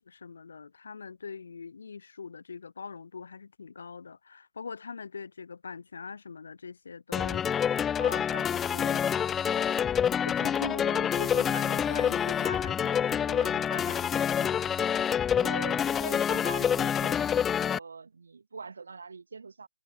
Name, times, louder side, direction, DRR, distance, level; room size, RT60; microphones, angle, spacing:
voice 1, 0.0-9.1 9.5-9.9 10.2-14.5, left 5 dB, 65° left, 2.0 m, -42 dB
sound 1, 7.1-17.8, left 8 dB, 10° left, 0.8 m, -27 dB
voice 2, 15.4-17.2 17.6-19.7, right 4 dB, 70° right, 5.1 m, -42 dB
hypercardioid pair, 155°, 0 cm